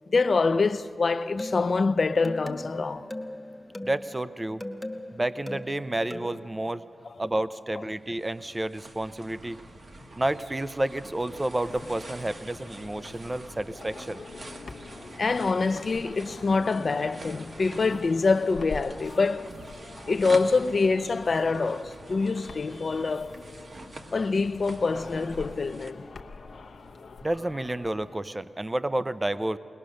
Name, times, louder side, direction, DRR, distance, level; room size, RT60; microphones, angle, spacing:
voice 1, 0.1-3.1 15.2-19.5 20.1-23.4 24.1-26.0, left 4 dB, 55° left, 0.6 m, -25 dB
sound 1, 1.0-6.5, left 1 dB, 10° left, 1.2 m, -40 dB
voice 2, 3.8-4.6 5.1-6.8 7.2-9.6 10.2-14.2 27.2-29.6, right 1 dB, 20° right, 0.5 m, -30 dB
sound 2, 7.9-25.9, right 2 dB, 55° right, 1.4 m, -46 dB
sound 3, 11.6-28.2, left 4 dB, 75° left, 1.0 m, -45 dB
21.5 x 20.0 x 6.4 m
cardioid pair, 65°, 0 cm